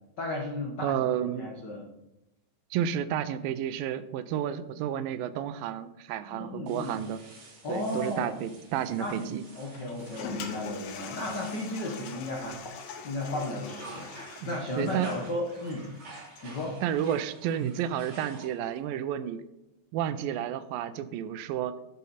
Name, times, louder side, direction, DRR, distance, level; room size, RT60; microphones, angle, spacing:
voice 1, 0.2-1.9 6.3-6.9 7.6-8.3 9.0-9.3 9.5-15.9 16.4-16.8, left 2 dB, 70° left, -1 dB, 1.0 m, -34 dB
voice 2, 0.8-1.5 2.7-7.2 7.7-9.4 14.4-15.1 16.8-19.4 19.9-21.7, right 10 dB, 80° right, 11 dB, 2.3 m, -31 dB
sound 1, 6.7-12.8 13.2-18.8, right 2 dB, 45° right, 3.3 m, -50 dB
Toilet flush, 9.7-16.7, left 5 dB, 90° left, 3.1 m, -43 dB
13.0 x 8.5 x 4.2 m, 0.89 s
omnidirectional pair, 4.2 m